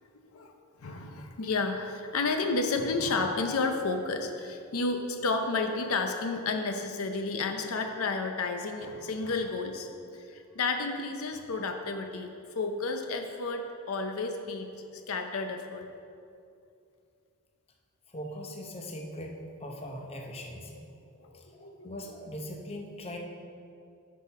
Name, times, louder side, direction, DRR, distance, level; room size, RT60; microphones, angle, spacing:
voice 1, 0.8-9.9 10.1-12.3 12.6-15.9 20.8-20.9 21.3-21.9, left 3 dB, 70° left, 5 dB, 0.6 m, -31 dB
voice 2, 18.1-20.8 21.3-23.2, equal, 25° left, 2 dB, 0.7 m, -40 dB
8.4 x 5.6 x 4.9 m, 2.5 s
head